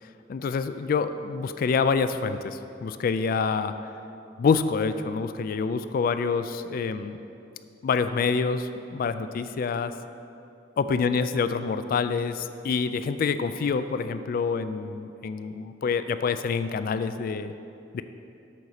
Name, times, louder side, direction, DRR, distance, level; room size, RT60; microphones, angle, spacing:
voice 1, 0.3-3.7 4.4-7.2 7.8-9.9 10.8-17.5 17.9-18.0, left 5 dB, 50° left, 11 dB, 0.3 m, -27 dB
8.6 x 4.1 x 6.4 m, 2.7 s
head